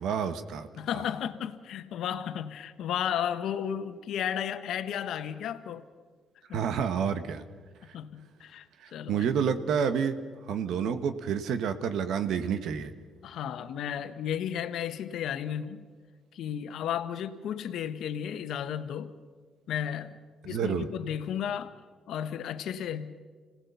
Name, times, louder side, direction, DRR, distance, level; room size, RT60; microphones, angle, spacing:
voice 1, 0.0-0.7 6.5-7.4 8.8-10.2 10.5-12.9 20.5-20.9, right 7 dB, 75° right, 10 dB, 1.2 m, -29 dB
voice 2, 0.8-5.8 6.5-6.6 7.9-9.3 13.2-15.9 16.3-19.1 19.7-20.2 20.4-21.8 22.1-23.2, left 9 dB, 75° left, 10 dB, 1.1 m, -33 dB
26.0 x 18.0 x 6.9 m, 1.5 s
cardioid pair, 90°, 0 cm